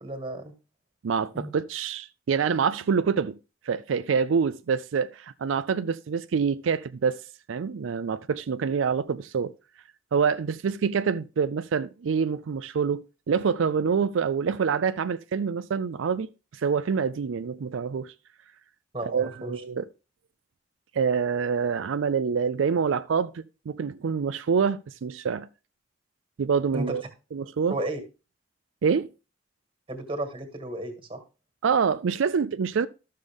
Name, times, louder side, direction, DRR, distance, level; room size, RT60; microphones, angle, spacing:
voice 1, 0.0-0.5 1.3-1.5 18.9-19.5 26.7-27.0 27.7-28.0 29.9-31.2, right 1 dB, 30° right, 1.8 m, -33 dB
voice 2, 1.0-3.4 3.7-7.2 7.5-9.5 10.1-18.1 19.1-19.9 20.9-25.5 26.4-27.0 27.3-27.8 28.8-29.1 31.6-32.9, right 6 dB, 90° right, 0.4 m, -26 dB
12.5 x 6.5 x 3.6 m
head